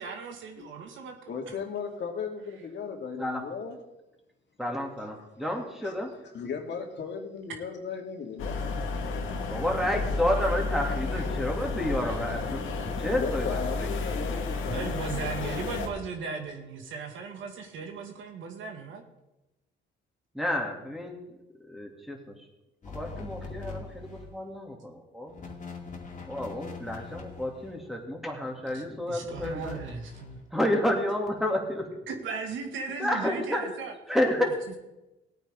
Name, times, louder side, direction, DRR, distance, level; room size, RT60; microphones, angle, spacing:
voice 1, 0.0-1.1 1.5-1.6 11.1-11.3 14.7-19.0 28.7-28.8 29.1-30.4 32.1-33.9 34.4-34.8, right 5 dB, 75° right, 4 dB, 1.9 m, -37 dB
voice 2, 1.3-3.8 5.0-5.5 5.8-6.0 6.3-8.7 12.2-12.3 13.0-15.8, left 6 dB, 65° left, 2 dB, 2.2 m, -37 dB
voice 3, 4.6-6.1 9.5-12.7 13.0-13.9 20.3-21.2 21.7-22.3 22.9-25.3 26.2-29.7 30.5-31.9 33.0-33.7 34.1-34.5, left 1 dB, ahead, 1 dB, 2.7 m, -30 dB
sound 1, 8.4-15.9, left 3 dB, 85° left, 1.8 m, -31 dB
sound 2, 22.8-24.4 25.3-27.9 29.3-30.4, left 4 dB, 40° left, 2.5 m, -42 dB
17.5 x 9.0 x 3.7 m, 0.97 s
cardioid pair, 90°, 20 cm